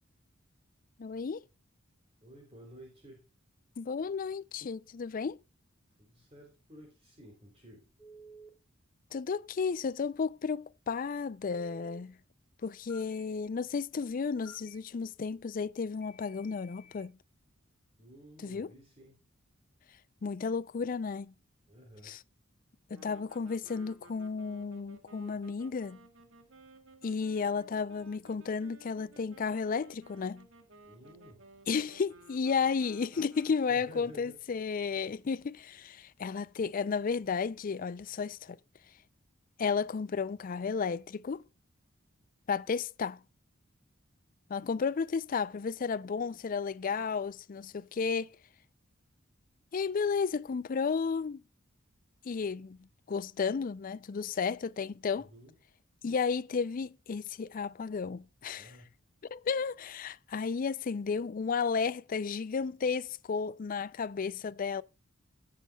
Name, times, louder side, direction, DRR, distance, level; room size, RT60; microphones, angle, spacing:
voice 1, 1.0-1.4 3.8-5.4 9.1-12.2 12.6-17.2 18.4-18.7 20.2-21.3 22.0-22.2 22.9-26.0 27.0-30.5 31.7-38.6 39.6-41.4 42.5-43.2 44.5-48.4 49.7-51.4 52.3-52.8 53.1-55.3 56.0-58.7 59.3-64.8, left 5 dB, 45° left, 0.4 m, -33 dB
voice 2, 2.2-3.3 6.0-7.9 18.0-19.2 21.7-22.1 30.9-31.4 33.7-34.4 55.1-55.5 58.6-58.9, equal, 30° right, 3.2 m, -53 dB
Telephone, 8.0-8.5 11.5-12.0 12.9-13.2 14.4-14.8 16.0-17.0, right 1 dB, 5° left, 2.2 m, -53 dB
sound 1, 22.9-33.9, right 2 dB, 75° right, 1.8 m, -57 dB
17.5 x 7.7 x 2.3 m
head